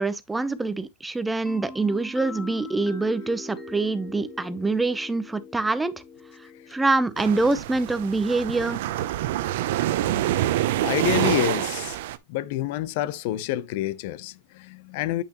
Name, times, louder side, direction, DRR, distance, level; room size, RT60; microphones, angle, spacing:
voice 1, 0.0-5.9 6.7-8.8, right 3 dB, 10° right, 0.6 m, -25 dB
sound 1, 1.5-9.1, left 3 dB, 10° left, 1.5 m, -43 dB
sound 2, 7.2-12.2, right 14 dB, 70° right, 0.7 m, -26 dB
voice 2, 10.8-12.0 12.3-15.2, left 13 dB, 60° left, 0.6 m, -28 dB
8.3 x 5.8 x 2.9 m
supercardioid pair, 140°, 0 cm